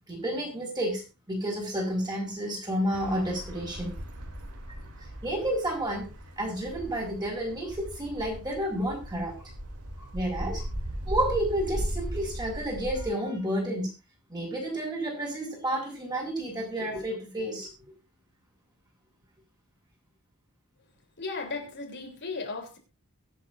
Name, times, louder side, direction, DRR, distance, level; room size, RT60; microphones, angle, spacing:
voice 1, 0.1-1.0 1.3-3.9 5.2-6.1 6.4-9.5 10.0-10.7 11.1-13.9 14.3-17.7, right 1 dB, 20° right, 5.8 m, -30 dB
sound 1, 2.9-13.1, equal, 85° right, 3.0 m, -38 dB
voice 2, 21.2-22.8, left 3 dB, 55° left, 3.5 m, -35 dB
23.0 x 8.3 x 2.6 m
head